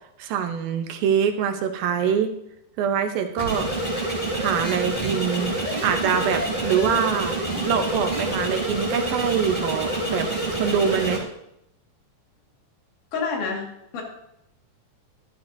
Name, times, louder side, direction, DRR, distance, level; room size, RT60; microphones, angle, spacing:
voice 1, 0.2-2.3 2.8-3.7 4.4-5.6 5.8-7.4 7.6-11.2, right 7 dB, 80° right, 6 dB, 2.5 m, -24 dB
sound 1, 3.4-11.2, right 2 dB, 15° left, 2.5 m, -27 dB
voice 2, 13.1-13.7 13.9-14.0, left 5 dB, 60° left, -1 dB, 3.3 m, -27 dB
12.5 x 12.0 x 2.7 m, 0.80 s
omnidirectional pair, 4.2 m